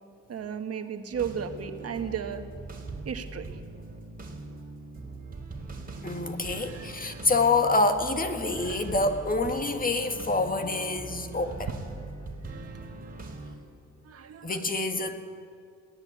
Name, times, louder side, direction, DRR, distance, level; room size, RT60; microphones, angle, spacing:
voice 1, 0.3-2.4 3.0-3.5 6.6-7.2 8.6-8.8 14.0-14.8, right 7 dB, 50° right, 7 dB, 1.6 m, -35 dB
sound 1, 1.1-13.5, right 3 dB, 30° right, 3.8 m, -41 dB
voice 2, 6.0-11.7 14.4-15.2, left 3 dB, 30° left, 6 dB, 2.0 m, -27 dB
22.0 x 17.5 x 8.3 m, 2.4 s
cardioid pair, 90°, 30 cm